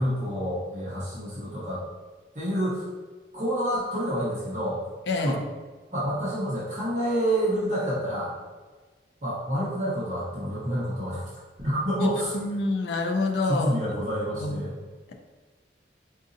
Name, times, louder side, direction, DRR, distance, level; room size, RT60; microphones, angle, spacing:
voice 1, 0.0-1.8 2.3-2.9 3.3-4.8 5.2-5.4 5.9-8.3 9.2-12.3 13.5-14.8, equal, 40° right, -9 dB, 0.7 m, -28 dB
voice 2, 5.1-5.4 12.0-12.1 12.3-13.7 14.4-14.6, left 2 dB, 70° left, 3 dB, 0.4 m, -26 dB
3.8 x 2.6 x 2.5 m, 1.4 s
head